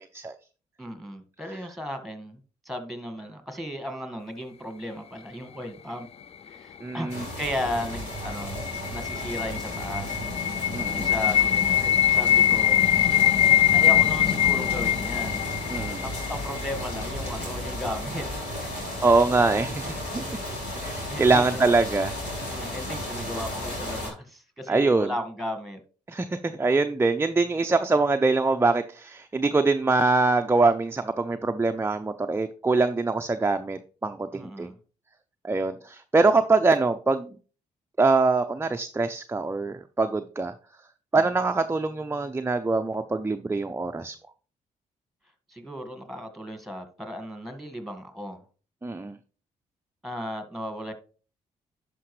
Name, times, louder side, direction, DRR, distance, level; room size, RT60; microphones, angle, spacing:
voice 1, 0.8-6.1 6.5-8.6 8.9-10.6 10.9-12.8 13.7-15.5 16.0-18.4 21.1-21.6 22.5-25.8 34.3-34.8 41.1-41.3 45.5-48.4 50.0-50.9, equal, ahead, 1.8 m, -35 dB
voice 2, 6.8-7.2 10.7-11.1 15.7-16.0 19.0-20.2 20.8-22.1 24.7-25.1 26.1-34.7 35.4-37.4 38.0-40.5 41.1-44.1 48.8-49.2, right 3 dB, 15° right, 0.5 m, -24 dB
sound 1, 7.1-24.1, left 1 dB, 80° left, 3.4 m, -34 dB
sound 2, 7.9-16.9, left 11 dB, 40° left, 0.3 m, -23 dB
11.0 x 5.1 x 3.2 m
hypercardioid pair, 50°, 16 cm